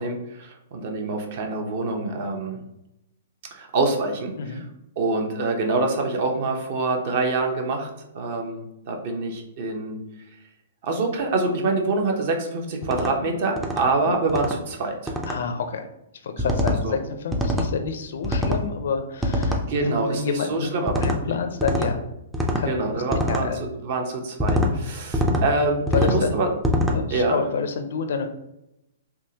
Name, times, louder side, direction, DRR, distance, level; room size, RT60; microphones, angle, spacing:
voice 1, 0.0-2.6 3.5-4.6 5.0-7.9 8.1-10.0 10.8-15.1 16.4-16.9 19.7-21.3 22.7-23.5 23.8-26.5 27.1-27.4, right 3 dB, 45° right, 3 dB, 0.7 m, -26 dB
sound 1, 12.8-13.1 13.6-13.8 14.3-14.6 15.1-15.4 16.4-16.8 17.3-17.7 18.2-18.6 19.2-19.6 20.9-21.2 21.6-21.9 22.3-22.7 23.1-23.4 24.4-24.7 25.1-25.4 25.9-26.2 26.6-27.0, left 1 dB, 5° right, 0.4 m, -23 dB
voice 2, 15.3-15.9 16.2-20.7 21.0-22.0 22.4-23.7 25.9-26.4 26.9-28.3, left 5 dB, 65° left, 7 dB, 0.4 m, -28 dB
3.6 x 2.8 x 2.7 m, 0.85 s
hypercardioid pair, 160°, 0 cm